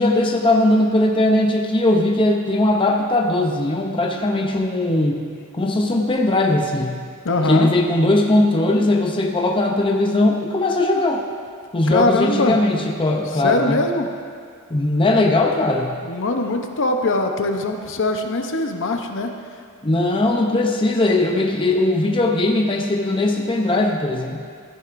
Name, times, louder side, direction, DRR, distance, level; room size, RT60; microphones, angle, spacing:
voice 1, 0.0-5.2 5.5-7.0 7.5-11.2 11.7-13.8 14.7-15.9 19.8-24.4, left 2 dB, 25° left, 1 dB, 0.6 m, -19 dB
voice 2, 7.2-7.7 11.9-12.6 13.4-14.1 16.0-19.3, left 2 dB, 60° left, 4 dB, 0.7 m, -21 dB
14.0 x 10.0 x 2.5 m, 2.1 s
head